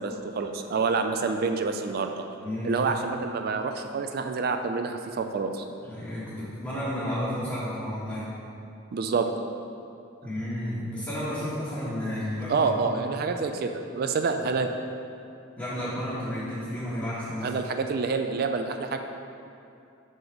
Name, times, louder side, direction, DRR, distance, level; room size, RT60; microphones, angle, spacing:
voice 1, 0.0-2.1 2.6-5.6 8.9-9.3 12.5-14.7 17.4-19.0, right 4 dB, 50° right, 6 dB, 0.3 m, -27 dB
voice 2, 2.4-3.0 5.8-8.3 10.2-13.1 15.6-17.5, equal, 10° left, -13 dB, 1.2 m, -32 dB
5.0 x 3.9 x 5.9 m, 2.6 s
head